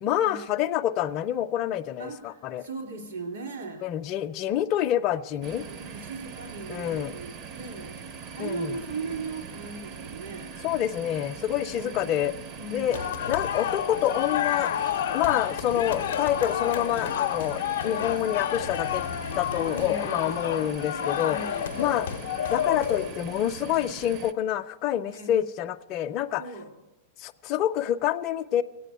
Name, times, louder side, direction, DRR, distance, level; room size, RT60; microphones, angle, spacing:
voice 1, 0.0-2.7 3.8-5.6 6.7-7.1 8.4-8.8 10.6-12.3 12.7-13.0 13.3-14.7 15.1-19.0 19.4-21.4 21.8-22.1 22.5-26.4 27.2-28.6, left 11 dB, 35° left, 6 dB, 0.4 m, -27 dB
voice 2, 2.0-3.9 5.3-8.0 8.3-10.6 11.7-12.2 12.6-13.2 15.8-16.1 17.8-18.2 19.7-20.6 21.3-22.1 25.1-25.4 26.4-26.7, right 3 dB, 75° right, 4 dB, 3.3 m, -39 dB
sound 1, 5.4-24.3, right 6 dB, 30° right, 0.5 m, -41 dB
sound 2, 12.9-23.4, left 10 dB, 85° left, 0.5 m, -30 dB
sound 3, 12.9-13.1 13.5-13.7 14.1-14.3 14.7-14.9 15.3-15.5, right 10 dB, 55° right, 0.8 m, -45 dB
15.5 x 9.1 x 8.0 m, 1.1 s
supercardioid pair, 160°, 0 cm